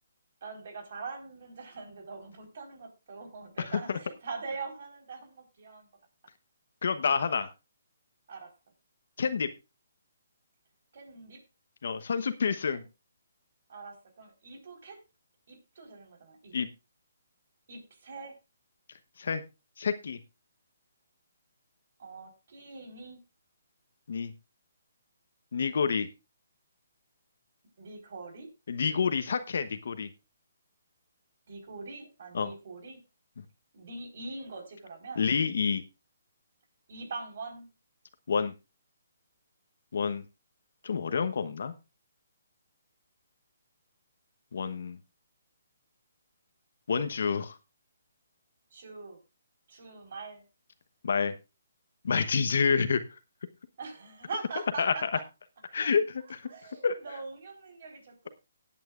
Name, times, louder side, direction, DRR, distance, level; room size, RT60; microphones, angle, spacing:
voice 1, 0.4-5.9 8.3-8.5 10.9-11.4 12.7-12.8 13.7-15.0 15.5-16.6 17.7-18.3 22.0-23.2 27.8-28.5 31.5-33.0 33.7-35.3 36.9-37.7 48.7-49.2 49.7-50.4 53.8-55.2 55.8-55.9 56.2-58.3, right 4 dB, 55° right, 4 dB, 4.4 m, -43 dB
voice 2, 6.8-7.5 9.2-9.5 11.8-12.8 16.5-16.7 19.2-19.4 19.8-20.2 24.1-24.3 25.5-26.1 28.7-30.1 32.3-32.5 35.2-35.8 38.3-38.5 39.9-40.2 40.8-41.7 44.5-45.0 46.9-47.6 51.0-51.3 52.0-53.0 54.8-55.1 55.7-56.4 56.8-57.0, left 5 dB, 65° left, 10 dB, 1.0 m, -28 dB
18.5 x 9.0 x 2.5 m, 0.27 s
hypercardioid pair, 160°, 0 cm